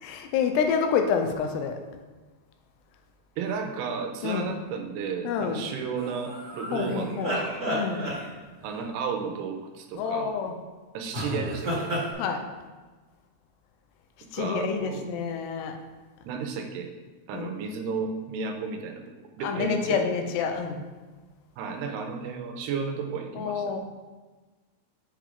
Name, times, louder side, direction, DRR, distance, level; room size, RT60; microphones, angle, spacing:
voice 1, 0.0-1.8 4.2-4.5 5.2-5.7 6.7-7.3 7.7-8.1 10.0-10.5 12.2-12.5 14.3-15.8 17.3-17.6 19.4-20.8 23.3-23.8, left 6 dB, 90° left, 5 dB, 2.8 m, -28 dB
voice 2, 3.4-7.6 8.6-10.3 10.9-11.9 14.3-15.0 16.2-16.9 17.3-19.0 19.4-20.0 21.6-23.7, right 5 dB, 85° right, 4 dB, 2.7 m, -33 dB
sound 1, 6.0-8.7 11.1-12.1, equal, 40° right, 1.4 m, -32 dB
7.7 x 4.9 x 3.5 m, 1.3 s
omnidirectional pair, 4.7 m